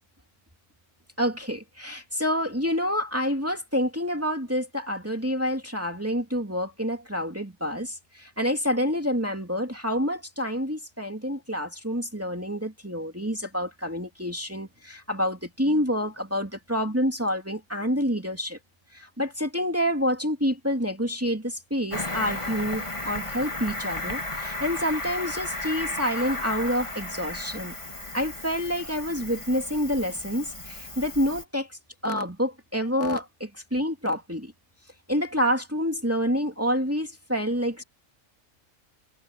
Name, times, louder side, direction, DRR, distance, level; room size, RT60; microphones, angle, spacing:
voice 1, 1.2-18.6 18.9-27.7 28.1-31.7 32.0-34.5 35.1-37.8, equal, 10° right, 2.7 m, -28 dB
Cricket, 21.9-31.4, left 1 dB, 25° left, 2.8 m, -34 dB
omnidirectional pair, 1.4 m